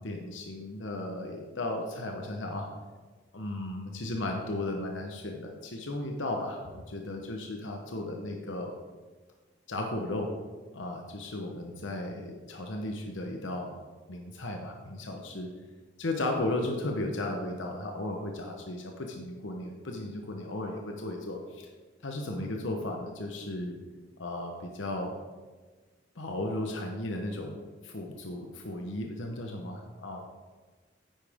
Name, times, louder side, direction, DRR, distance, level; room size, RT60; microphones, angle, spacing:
voice 1, 0.0-2.7 3.3-8.7 9.7-10.3 10.7-13.8 14.1-15.5 16.0-21.7 22.0-23.8 24.2-25.1 26.2-30.2, left 1 dB, 80° left, 2 dB, 1.0 m, -35 dB
10.0 x 9.0 x 3.6 m, 1.4 s
head